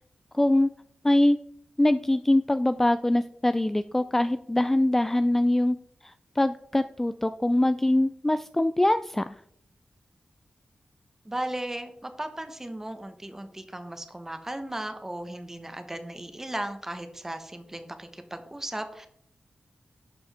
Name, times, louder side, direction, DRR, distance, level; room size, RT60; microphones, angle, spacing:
voice 1, 0.3-0.7 1.0-1.4 1.8-5.8 6.0-9.2, left 1 dB, 10° left, 11 dB, 0.3 m, -23 dB
voice 2, 11.2-19.1, right 1 dB, 15° right, 7 dB, 1.2 m, -36 dB
11.0 x 6.9 x 3.6 m, 0.68 s
wide cardioid pair, 105°, 3 cm